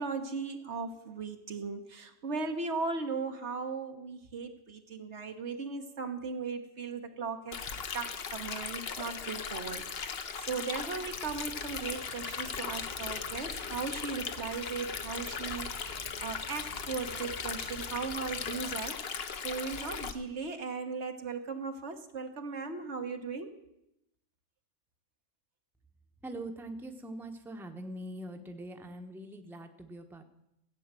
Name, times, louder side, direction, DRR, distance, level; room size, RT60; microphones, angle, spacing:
voice 1, 0.0-7.6 7.9-19.0 19.4-23.5, right 4 dB, 70° right, 6 dB, 1.5 m, -37 dB
Stream, 7.5-20.1, left 6 dB, 60° left, 1.1 m, -38 dB
sound 1, 11.2-18.8, right 2 dB, 30° right, 1.0 m, -52 dB
voice 2, 26.2-30.2, right 1 dB, ahead, 5 dB, 1.0 m, -43 dB
14.5 x 8.7 x 7.5 m, 0.84 s
omnidirectional pair, 1.2 m